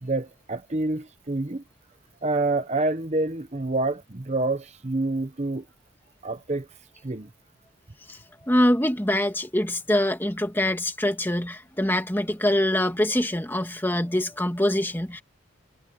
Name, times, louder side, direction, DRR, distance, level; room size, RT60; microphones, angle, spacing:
voice 1, 0.0-1.6 2.2-5.7 6.2-6.7 7.0-7.3, right 2 dB, 30° right, 0.8 m, -27 dB
voice 2, 8.5-15.2, left 1 dB, 10° left, 2.1 m, -24 dB
head